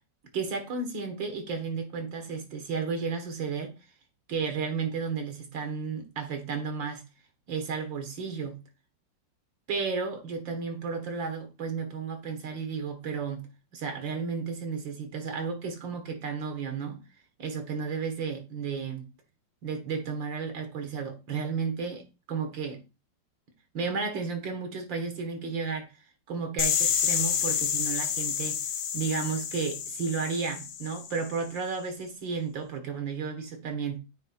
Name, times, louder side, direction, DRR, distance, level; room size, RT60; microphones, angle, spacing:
voice 1, 0.3-3.7 4.3-7.0 7.5-8.6 9.7-13.4 13.7-17.0 17.4-19.1 19.6-22.8 23.7-25.9 26.3-28.6 28.9-34.0, right 5 dB, 80° right, 2.3 m, -33 dB
sound 1, 26.6-31.4, left 8 dB, 65° left, 0.7 m, -29 dB
9.0 x 3.4 x 4.4 m
omnidirectional pair, 2.0 m